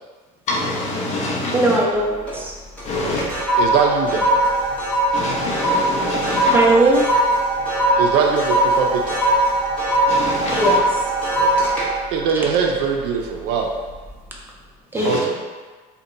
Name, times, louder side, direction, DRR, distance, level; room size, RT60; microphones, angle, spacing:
voice 1, 0.5-1.8 2.8-3.3 5.1-6.6 10.1-10.8 14.9-15.2, left 2 dB, 40° left, 0.7 m, -25 dB
voice 2, 1.5-2.5 6.5-7.0 10.5-10.8 14.9-15.2, right 1 dB, 10° right, 0.5 m, -18 dB
sound 1, 1.9-2.5 2.8-13.3 13.8-14.1, right 1 dB, 10° left, 0.9 m, -20 dB
voice 3, 3.6-4.3 8.0-9.2 11.4-11.7 12.1-13.7 15.0-15.4, right 5 dB, 70° right, 0.5 m, -21 dB
2.8 x 2.2 x 3.8 m
cardioid pair, 140°, 17 cm